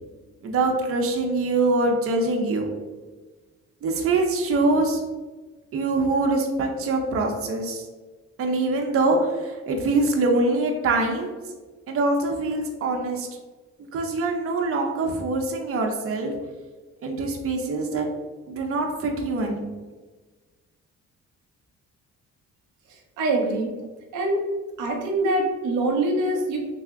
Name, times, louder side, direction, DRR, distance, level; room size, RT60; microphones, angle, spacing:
voice 1, 0.4-2.7 3.8-5.0 5.7-7.8 8.4-11.3 11.9-13.3 13.9-16.3 17.0-18.1 18.5-19.8, right 2 dB, 50° right, 2 dB, 0.6 m, -24 dB
voice 2, 23.2-23.7 24.1-24.4 24.8-26.6, right 2 dB, 85° right, 1 dB, 0.7 m, -24 dB
3.3 x 2.1 x 3.5 m, 1.3 s
cardioid pair, 90°, 30 cm